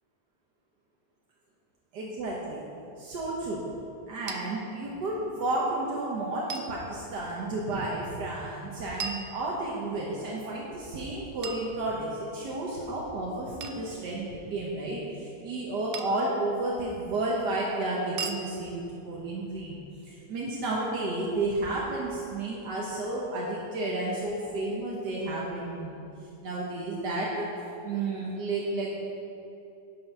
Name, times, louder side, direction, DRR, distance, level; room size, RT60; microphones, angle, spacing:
voice 1, 1.9-2.7 3.0-3.7 4.1-19.8 20.1-26.1 26.4-27.5 27.8-29.0, right 2 dB, 85° right, -5 dB, 1.8 m, -32 dB
sound 1, 4.3-4.4 6.5-6.7 9.0-9.9 11.4-12.3 13.6-13.9 15.9-16.3 18.2-18.4, right 4 dB, 65° right, 0.5 m, -38 dB
12.0 x 6.3 x 5.5 m, 2.7 s
omnidirectional pair, 1.8 m